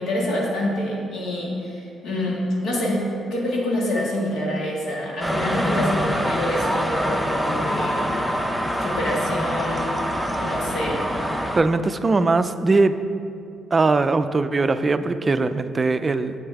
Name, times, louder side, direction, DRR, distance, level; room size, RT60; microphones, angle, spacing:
voice 1, 0.0-8.1 8.8-10.0 10.3-11.1, left 1 dB, 75° left, -3 dB, 1.9 m, -26 dB
sound 1, 5.2-11.6, equal, 5° left, 0.6 m, -25 dB
voice 2, 11.5-13.0 13.7-16.4, right 3 dB, 30° right, 11 dB, 0.3 m, -20 dB
7.7 x 7.2 x 3.5 m, 2.6 s
cardioid pair, 90°, 0 cm